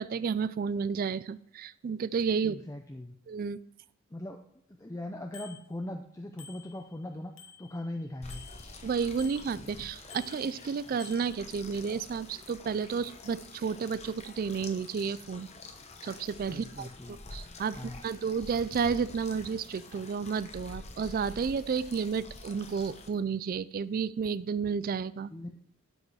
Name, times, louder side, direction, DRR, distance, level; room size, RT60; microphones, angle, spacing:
voice 1, 0.0-2.6 3.3-3.6 8.8-15.5 16.0-25.3, right 6 dB, 40° right, 17 dB, 0.3 m, -32 dB
voice 2, 2.4-3.2 4.1-4.4 4.8-8.4 16.5-17.2 17.7-18.0 25.3-25.5, left 1 dB, 15° left, 4 dB, 0.5 m, -40 dB
Bicycle bell, 5.3-5.6 6.4-7.0 7.4-9.5 10.1-11.4, left 5 dB, 65° left, 1.3 m, -51 dB
sound 1, 8.2-23.1, left 3 dB, 30° left, 0.9 m, -47 dB
12.5 x 5.2 x 4.8 m, 0.73 s
head